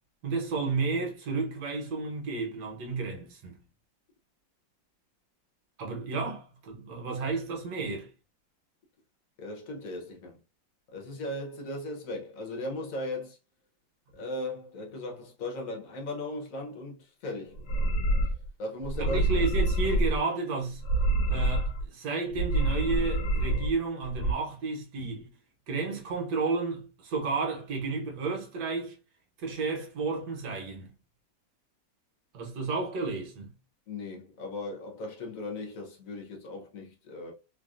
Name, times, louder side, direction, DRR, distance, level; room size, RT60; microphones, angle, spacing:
voice 1, 0.2-3.6 5.8-8.1 19.0-20.8 21.3-25.3 25.7-29.0 29.4-30.9 32.3-33.5, right 4 dB, 65° right, 1.3 m, -32 dB
voice 2, 9.4-10.4 10.9-13.4 14.1-17.6 18.6-19.2 33.9-37.3, left 1 dB, 60° left, 1.0 m, -37 dB
sound 1, 17.5-18.5 18.8-20.2 20.7-21.9 22.3-23.7 24.0-24.3, right 1 dB, 75° left, 1.2 m, -27 dB
3.2 x 2.4 x 2.4 m
omnidirectional pair, 2.1 m